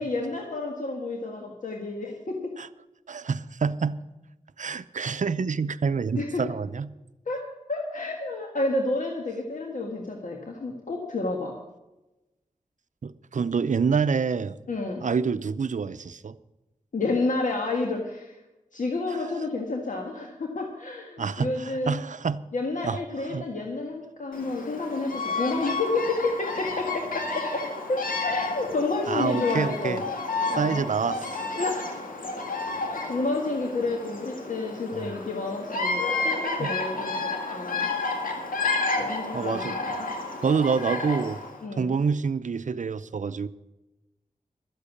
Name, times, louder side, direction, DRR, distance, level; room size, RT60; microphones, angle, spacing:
voice 1, 0.0-2.5 6.2-6.4 7.3-7.4 7.7-11.6 14.7-15.0 16.9-18.4 18.7-22.0 22.5-30.0 30.5-30.8 31.6-31.8 33.1-37.9 39.0-40.1 41.6-41.9, left 3 dB, 70° left, 1 dB, 1.7 m, -30 dB
voice 2, 3.1-4.0 4.6-6.9 13.0-14.6 15.0-16.3 19.1-19.4 21.2-22.4 22.8-23.0 23.3-23.4 29.1-30.0 30.6-31.7 34.9-35.1 36.6-36.7 39.3-39.7 40.4-41.4 41.8-43.5, right 5 dB, 65° right, 13 dB, 0.6 m, -27 dB
Bird vocalization bird call bird song, 24.3-41.6, left 3 dB, 90° left, 2.1 m, -31 dB
13.0 x 8.2 x 8.5 m, 1.0 s
cardioid pair, 55°, 14 cm